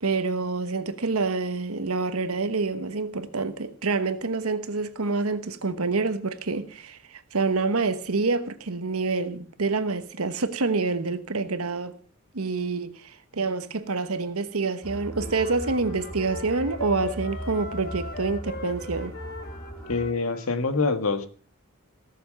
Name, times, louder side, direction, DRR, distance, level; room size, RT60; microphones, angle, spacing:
voice 1, 0.0-12.0 12.3-19.1, right 3 dB, 80° right, 1.2 m, -27 dB
sound 1, 14.8-20.1, equal, 15° left, 2.4 m, -38 dB
Wind instrument woodwind instrument, 15.2-20.5, left 2 dB, 45° left, 2.0 m, -39 dB
voice 2, 19.9-21.3, left 3 dB, 75° left, 1.5 m, -25 dB
17.5 x 7.1 x 6.3 m
head